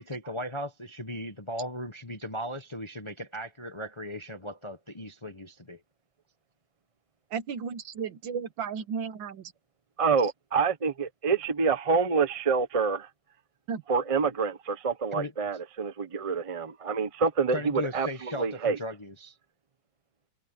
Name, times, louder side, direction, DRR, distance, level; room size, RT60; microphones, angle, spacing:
voice 1, 0.0-5.8 15.1-15.3 17.5-19.3, left 1 dB, 20° left, 0.8 m, -37 dB
voice 2, 7.3-9.5 13.7-13.8, right 6 dB, 70° right, 1.8 m, -34 dB
voice 3, 10.0-13.1 13.9-18.8, right 5 dB, 30° right, 0.7 m, -27 dB
omnidirectional pair, 2.2 m